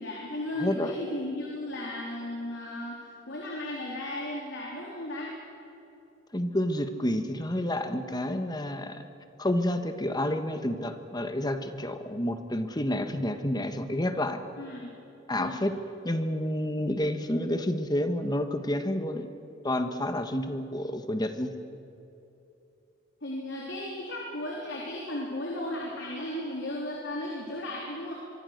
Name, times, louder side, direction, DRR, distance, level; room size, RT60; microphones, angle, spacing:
voice 1, 0.0-5.3 14.6-14.9 15.3-15.7 23.2-28.1, left 1 dB, 60° left, -3 dB, 4.0 m, -35 dB
voice 2, 0.6-0.9 6.3-9.1 9.4-14.4 15.3-15.7 16.0-19.3 19.6-21.5, left 1 dB, 20° left, 8 dB, 1.4 m, -29 dB
25.0 x 23.5 x 6.7 m, 2.7 s
head